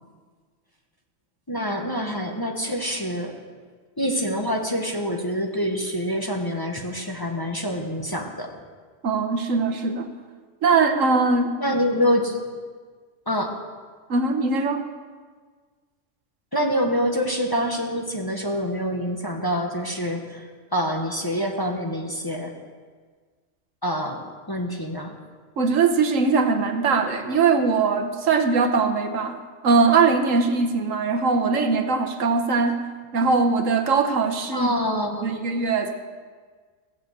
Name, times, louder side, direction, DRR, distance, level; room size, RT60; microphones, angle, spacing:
voice 1, 1.5-3.4 4.0-8.5 11.6-12.4 13.3-13.5 16.5-22.6 23.8-25.2 34.5-35.5, equal, 20° left, 1 dB, 1.3 m, -26 dB
voice 2, 9.0-10.1 10.6-11.5 14.1-14.8 25.6-29.4 29.6-32.8 33.1-34.7 35.2-35.9, right 4 dB, 75° right, 6 dB, 1.4 m, -21 dB
16.5 x 7.1 x 8.1 m, 1.5 s
omnidirectional pair, 1.3 m